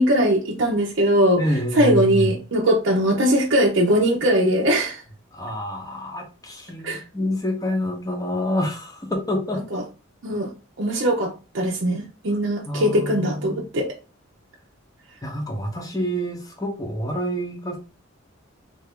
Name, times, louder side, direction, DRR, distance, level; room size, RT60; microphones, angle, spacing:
voice 1, 0.0-1.4 1.8-5.0 6.8-7.0 9.7-9.8 10.2-10.5 10.8-13.9, equal, 55° right, 0.6 m, -20 dB
voice 2, 1.4-2.4 5.3-9.8 12.6-13.7 15.2-17.8, equal, 15° left, 0.8 m, -27 dB
3.3 x 2.5 x 3.6 m
head